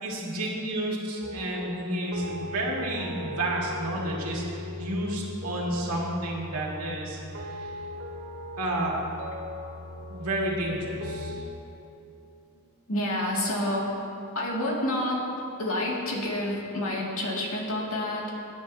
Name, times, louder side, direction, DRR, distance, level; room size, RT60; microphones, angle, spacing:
voice 1, 0.0-7.7 8.6-9.0 10.1-11.4, right 1 dB, 85° right, -3 dB, 2.2 m, -31 dB
sound 1, 1.2-11.4, left 1 dB, 65° right, 2.2 m, -38 dB
voice 2, 12.9-13.9 14.3-15.3 15.6-18.3, left 1 dB, 70° left, -3 dB, 2.1 m, -28 dB
18.0 x 9.9 x 2.7 m, 2.7 s
head